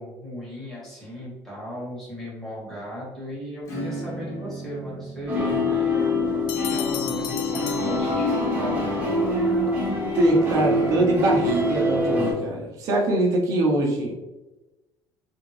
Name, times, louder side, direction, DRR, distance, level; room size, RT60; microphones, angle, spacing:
voice 1, 0.0-6.0 6.7-9.0, equal, 5° left, -7 dB, 1.3 m, -36 dB
Acoustic guitar / Strum, 3.6-9.9, right 2 dB, 35° left, 0.9 m, -39 dB
sound 1, 5.3-12.3, left 1 dB, 15° right, 0.9 m, -24 dB
Bell, 6.5-8.7, left 10 dB, 65° left, 0.4 m, -35 dB
voice 2, 10.1-14.1, right 1 dB, 40° right, -1 dB, 0.8 m, -23 dB
3.5 x 2.6 x 3.1 m, 1.1 s
cardioid pair, 180°, 8 cm